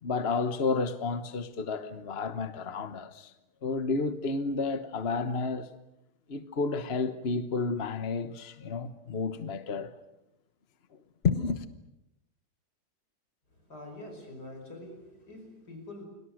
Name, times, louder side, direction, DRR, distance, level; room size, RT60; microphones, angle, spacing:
voice 1, 0.0-3.3 3.6-5.7 6.3-9.9 11.2-11.6, left 4 dB, 40° left, 1.3 m, -31 dB
voice 2, 13.6-16.0, left 1 dB, 80° left, 5.7 m, -45 dB
29.5 x 24.0 x 6.5 m
omnidirectional pair, 1.7 m